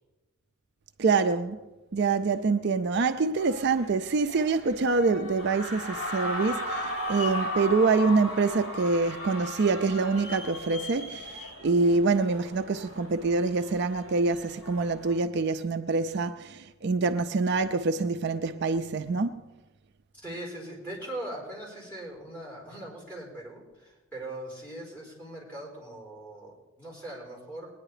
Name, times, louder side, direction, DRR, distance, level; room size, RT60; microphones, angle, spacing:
voice 1, 1.0-1.6 1.9-19.4, right 4 dB, 50° right, 0.4 m, -26 dB
sound 1, 3.4-15.2, left 1 dB, 70° left, 4.7 m, -37 dB
voice 2, 20.2-27.7, right 1 dB, 10° left, 4.8 m, -40 dB
21.0 x 9.9 x 4.9 m
head